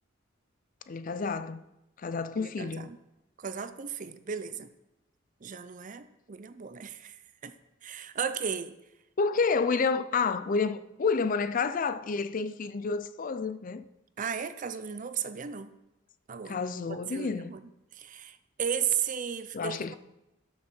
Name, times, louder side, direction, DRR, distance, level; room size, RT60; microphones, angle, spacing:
voice 1, 0.9-1.6 2.0-2.9 9.2-13.8 16.5-17.6 19.5-19.9, left 4 dB, 45° left, 0.5 m, -29 dB
voice 2, 2.4-3.0 3.4-4.7 5.4-7.5 7.8-8.8 14.2-15.8 16.3-16.6 16.9-19.9, right 7 dB, 40° right, 0.5 m, -35 dB
12.5 x 6.4 x 4.4 m
head